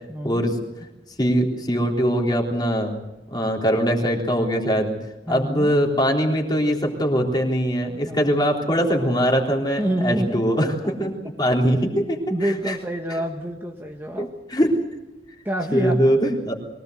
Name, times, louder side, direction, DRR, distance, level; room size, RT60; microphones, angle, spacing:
voice 1, 0.1-0.4 5.3-5.7 8.0-8.3 9.8-10.4 12.3-14.3 15.4-16.0, right 1 dB, 10° right, 2 dB, 1.5 m, -27 dB
voice 2, 1.2-2.9 3.3-5.0 5.3-10.7 11.0-11.1 11.4-12.8 14.5-14.7 15.7-16.5, equal, 25° left, 1 dB, 3.6 m, -21 dB
23.5 x 17.5 x 8.0 m, 1.0 s
head